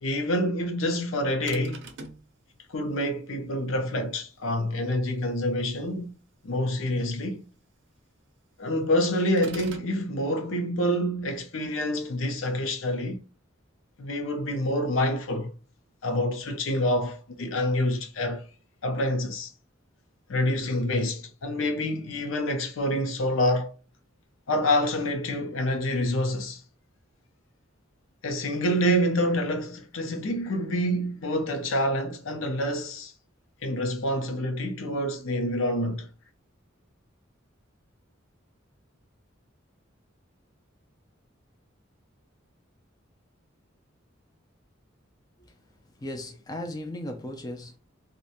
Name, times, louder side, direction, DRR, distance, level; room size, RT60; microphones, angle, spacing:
voice 1, 0.0-1.8 2.7-6.1 6.4-7.4 8.6-13.2 14.0-15.5 16.0-18.4 18.8-19.5 20.3-23.7 24.5-26.6 28.2-33.1 33.6-36.1, left 1 dB, 80° left, 0.6 m, -27 dB
sound 1, 1.5-2.3 9.4-9.9, right 3 dB, 65° right, 0.5 m, -41 dB
voice 2, 46.0-47.8, left 1 dB, 20° left, 0.4 m, -36 dB
2.5 x 2.1 x 2.7 m
head